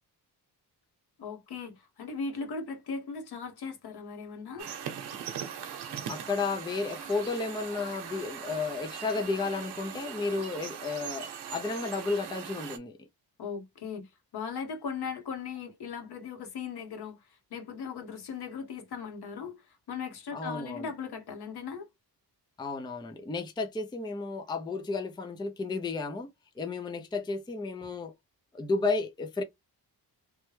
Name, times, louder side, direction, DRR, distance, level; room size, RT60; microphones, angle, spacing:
voice 1, 1.2-4.7 13.4-21.9, left 5 dB, 70° left, 1.1 m, -38 dB
sound 1, 4.6-12.8, right 8 dB, 75° right, 0.8 m, -40 dB
voice 2, 6.1-13.0 20.3-20.9 22.6-26.3 26.6-28.1 28.5-29.4, left 3 dB, 10° left, 0.4 m, -32 dB
3.2 x 2.1 x 3.1 m
wide cardioid pair, 145°, 40 cm